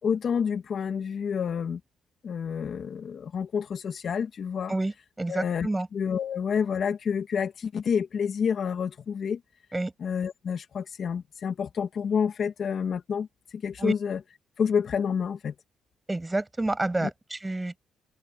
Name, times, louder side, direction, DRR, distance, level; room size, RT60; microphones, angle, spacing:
voice 1, 0.0-1.8 2.2-4.7 5.3-9.4 10.0-14.2 14.6-15.5 17.0-17.1, left 7 dB, 55° left, 2.0 m, -29 dB
voice 2, 5.2-5.9 9.7-9.9 13.8-13.9 16.1-17.8, right 2 dB, 15° right, 7.9 m, -28 dB
cardioid pair, 90°, 0 cm